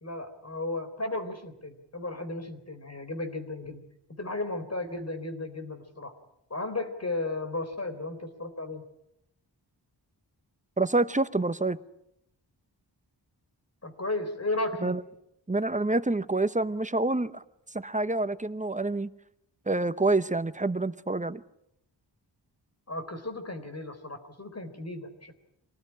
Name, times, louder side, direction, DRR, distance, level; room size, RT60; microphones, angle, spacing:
voice 1, 0.0-3.8 4.2-6.1 6.5-8.8 13.8-15.0 22.9-25.3, left 2 dB, 35° left, 3.8 m, -34 dB
voice 2, 10.8-11.8 14.8-15.0 15.5-17.4 17.7-19.1 19.7-21.4, right 2 dB, 15° right, 0.9 m, -27 dB
26.0 x 19.0 x 9.9 m
wide cardioid pair, 95°, 42 cm